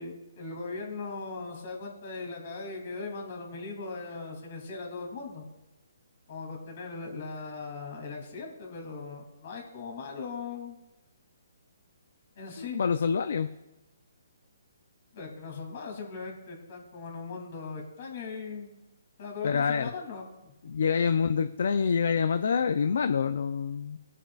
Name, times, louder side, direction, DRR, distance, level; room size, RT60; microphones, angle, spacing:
voice 1, 0.0-5.4 6.3-10.8 12.4-12.8 15.1-18.7 19.2-20.5, left 4 dB, 50° left, 1 dB, 2.7 m, -39 dB
voice 2, 12.6-13.5 19.4-19.9 20.7-24.0, left 6 dB, 65° left, 10 dB, 0.4 m, -26 dB
20.0 x 7.2 x 2.4 m, 0.99 s
hypercardioid pair, 145°, 0 cm